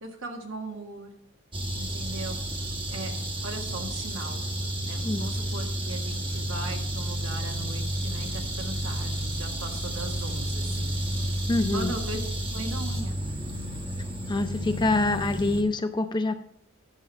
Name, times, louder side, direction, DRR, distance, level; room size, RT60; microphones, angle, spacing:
voice 1, 0.0-1.1 1.7-2.4 2.9-3.1 3.4-4.4 4.9-11.0 11.7-12.2 12.5-13.2, right 2 dB, 70° right, 2 dB, 1.7 m, -38 dB
sound 1, 1.5-15.6, right 1 dB, 25° right, 1.2 m, -31 dB
voice 2, 11.5-11.9 14.3-16.3, left 2 dB, 20° left, 8 dB, 0.5 m, -25 dB
10.0 x 7.0 x 4.4 m, 0.67 s
head